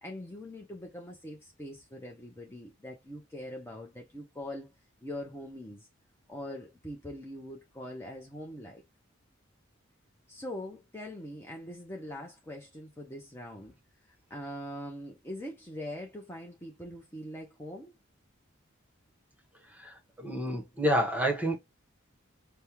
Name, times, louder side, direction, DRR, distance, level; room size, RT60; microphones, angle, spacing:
voice 1, 0.0-4.7 5.0-5.9 6.3-8.8 10.3-13.8 14.3-17.9, left 1 dB, 10° left, 0.7 m, -42 dB
voice 2, 19.8-21.6, equal, 10° right, 1.1 m, -29 dB
5.3 x 2.2 x 2.9 m
head